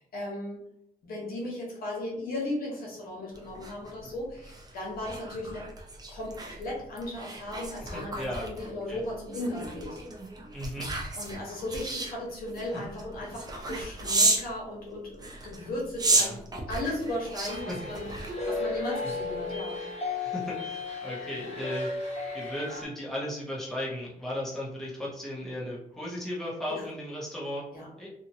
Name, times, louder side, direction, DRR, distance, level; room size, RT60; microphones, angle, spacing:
voice 1, 0.1-0.6 1.0-5.7 6.1-10.0 11.1-18.1 18.5-19.8 26.7-26.9 27.7-27.9, left 1 dB, 70° left, -3 dB, 1.1 m, -36 dB
sound 1, 3.4-14.5 15.1-18.8 19.2-19.4, right 2 dB, 25° right, 0.7 m, -32 dB
voice 2, 7.9-8.5 8.9-9.0 10.5-10.9 12.7-12.8 16.2-16.4 17.7-17.8 18.1-18.3 20.2-27.7 28.0-28.1, left 1 dB, ahead, -6 dB, 1.1 m, -36 dB
sound 2, 17.5-22.8, left 3 dB, 45° left, 1.1 m, -34 dB
2.8 x 2.6 x 2.8 m, 0.77 s
cardioid pair, 95°, 16 cm